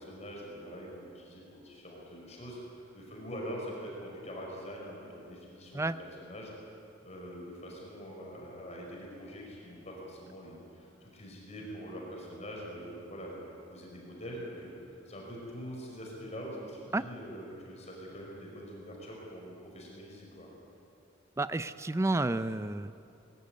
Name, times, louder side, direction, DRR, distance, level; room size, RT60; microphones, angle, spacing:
voice 1, 0.0-5.9 6.2-6.5 7.0-20.5, equal, 35° left, -2 dB, 5.3 m, -44 dB
voice 2, 21.4-22.9, right 2 dB, 15° right, 13 dB, 0.5 m, -30 dB
21.0 x 17.5 x 9.6 m, 2.8 s
head